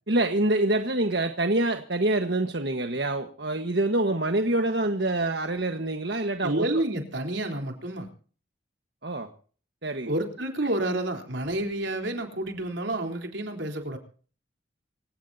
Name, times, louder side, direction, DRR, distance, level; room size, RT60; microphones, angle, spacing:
voice 1, 0.1-6.8 9.0-9.3 9.8-10.1, right 2 dB, 60° right, 6 dB, 1.4 m, -26 dB
voice 2, 6.4-8.1 10.1-14.0, right 1 dB, 80° right, 4 dB, 3.8 m, -29 dB
26.0 x 17.0 x 2.8 m, 0.42 s
head